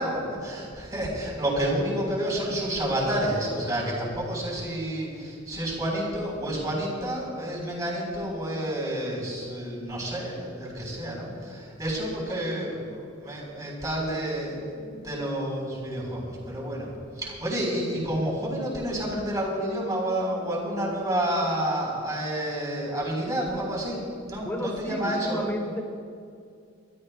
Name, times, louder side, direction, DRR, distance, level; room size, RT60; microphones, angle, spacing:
voice 1, 0.0-16.9 17.2-24.0 24.3-25.5, right 1 dB, 20° right, -4 dB, 4.0 m, -29 dB
voice 2, 24.4-25.8, left 1 dB, 10° left, 4 dB, 1.2 m, -32 dB
27.0 x 13.5 x 2.3 m, 2.4 s
head